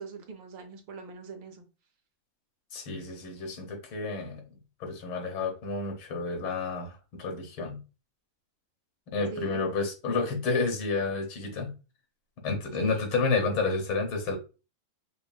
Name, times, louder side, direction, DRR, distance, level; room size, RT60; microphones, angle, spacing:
voice 1, 0.0-1.6 9.3-9.6 12.8-13.1, right 5 dB, 75° right, 1.4 m, -41 dB
voice 2, 2.7-4.4 4.8-7.8 9.1-11.7 12.4-14.4, left 4 dB, 90° left, 1.8 m, -30 dB
5.3 x 2.5 x 2.3 m
omnidirectional pair, 2.1 m